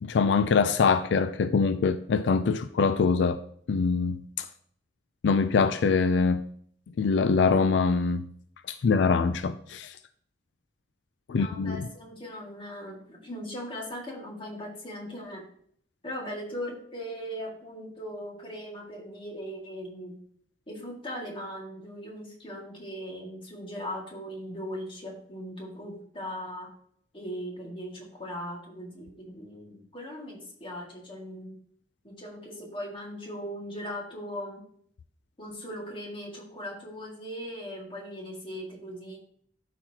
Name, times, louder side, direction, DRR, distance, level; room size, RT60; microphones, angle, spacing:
voice 1, 0.0-3.4 3.7-4.5 5.2-6.4 7.0-8.2 8.7-10.0 11.3-11.9, left 5 dB, 85° left, 0.4 m, -24 dB
voice 2, 11.3-15.4 16.0-20.2 20.7-26.7 27.1-31.6 32.0-34.6 35.4-39.2, equal, 30° left, 2.0 m, -39 dB
12.5 x 4.3 x 2.8 m
head